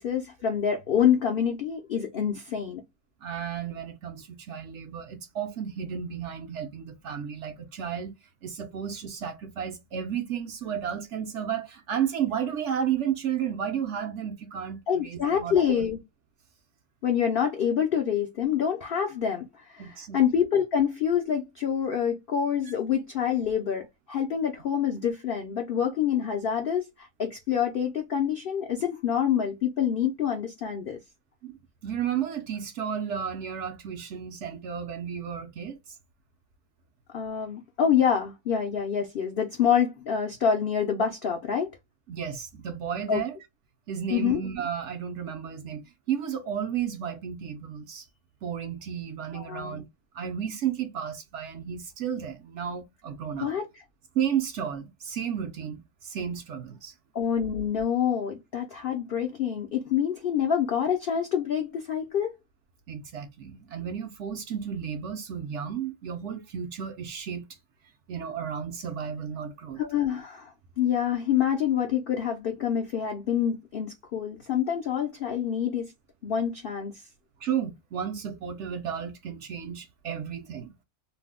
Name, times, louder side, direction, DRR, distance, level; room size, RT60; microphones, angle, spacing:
voice 1, 0.0-2.8 14.9-16.0 17.0-31.0 37.1-41.7 43.1-43.2 44.1-44.4 49.3-49.8 53.4-53.8 57.1-62.3 69.8-75.9 76.2-77.0, left 8 dB, 75° left, 0.5 m, -27 dB
voice 2, 3.2-8.1 8.4-15.9 19.8-20.2 22.7-22.8 31.4-31.6 31.8-36.0 42.1-43.4 43.9-48.1 48.4-49.9 50.1-53.5 54.1-56.9 62.9-67.5 68.1-69.8 77.4-80.7, right 8 dB, 65° right, 0.7 m, -33 dB
2.6 x 2.0 x 3.5 m
omnidirectional pair, 1.5 m